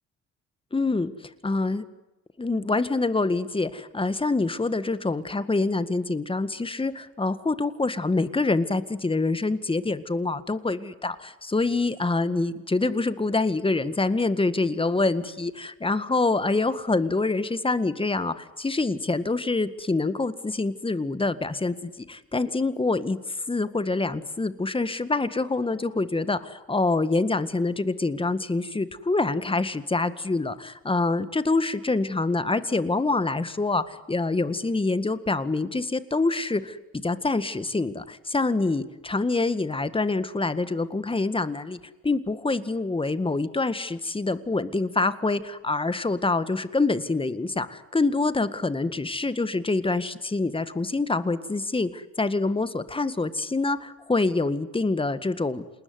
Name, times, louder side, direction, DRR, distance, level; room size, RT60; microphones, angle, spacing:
voice 1, 0.7-1.8 2.4-36.8 37.0-41.8 42.0-55.6, left 3 dB, 15° left, 13 dB, 1.9 m, -26 dB
28.0 x 20.5 x 9.7 m, 1.1 s
supercardioid pair, 75°, 32 cm